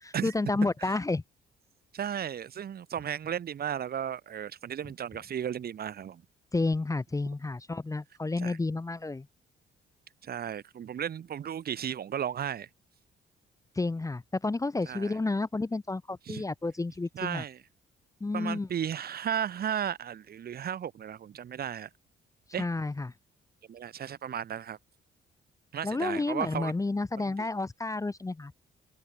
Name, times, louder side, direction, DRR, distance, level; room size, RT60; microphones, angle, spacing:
voice 1, 0.0-1.2 6.5-9.3 13.7-17.4 18.2-18.7 22.6-23.1 25.8-28.5, left 3 dB, 15° left, 0.9 m, -31 dB
voice 2, 1.9-6.2 8.4-8.6 10.2-12.7 14.9-15.2 16.2-16.4 17.1-17.6 18.3-21.9 22.5-22.7 23.7-24.8 25.7-26.7 27.2-27.5, right 9 dB, 50° right, 1.0 m, -35 dB
cardioid pair, 90°, 20 cm